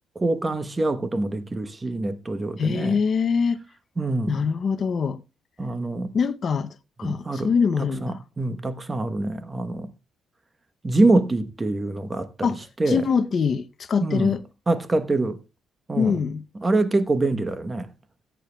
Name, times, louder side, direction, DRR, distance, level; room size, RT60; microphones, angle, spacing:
voice 1, 0.1-3.0 4.0-4.5 5.6-6.1 7.0-7.5 7.8-9.9 10.8-12.5 12.8-13.0 14.0-14.3 14.7-15.4 15.9-16.2 16.6-17.9, right 2 dB, 20° right, 1.0 m, -25 dB
voice 2, 2.6-3.6 4.3-5.2 6.1-8.2 12.4-14.4 16.0-16.4, left 6 dB, 45° left, 0.6 m, -24 dB
19.0 x 9.0 x 2.2 m
cardioid pair, 105°, 0 cm